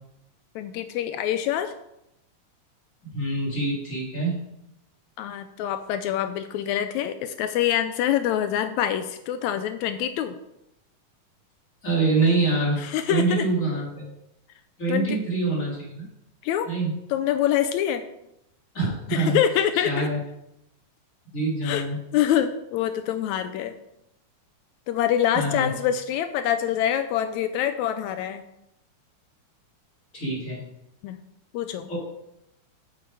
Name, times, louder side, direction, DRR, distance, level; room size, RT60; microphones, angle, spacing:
voice 1, 0.5-1.7 5.2-10.4 12.8-13.5 14.9-15.2 16.4-16.7 17.1-18.0 19.1-20.1 21.6-21.8 22.1-23.7 24.9-28.4 31.0-31.2 31.5-31.9, left 10 dB, 80° left, 10 dB, 1.7 m, -25 dB
voice 2, 3.1-4.4 11.8-12.8 13.1-14.1 14.8-16.0 16.6-17.0 18.7-19.4 19.7-20.2 21.3-22.0 25.3-25.7 30.1-30.6 31.9-32.0, right 3 dB, 25° left, -5 dB, 2.7 m, -25 dB
7.9 x 7.3 x 4.8 m, 0.84 s
omnidirectional pair, 3.5 m